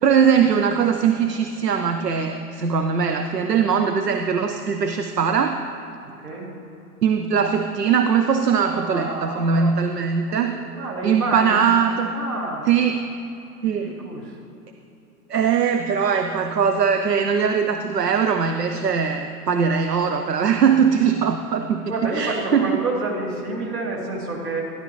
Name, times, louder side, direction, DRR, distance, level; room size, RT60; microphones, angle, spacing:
voice 1, 0.0-5.6 7.0-10.6 11.0-12.1 12.7-13.0 13.6-13.9 15.3-22.8, right 6 dB, 90° right, 7 dB, 0.6 m, -21 dB
voice 2, 6.0-6.6 8.7-9.7 10.3-11.7 12.1-12.7 13.8-14.4 21.9-24.6, right 2 dB, 70° right, -2 dB, 2.7 m, -29 dB
13.0 x 11.5 x 3.0 m, 2.9 s
figure-of-eight pair, 105°, 47 cm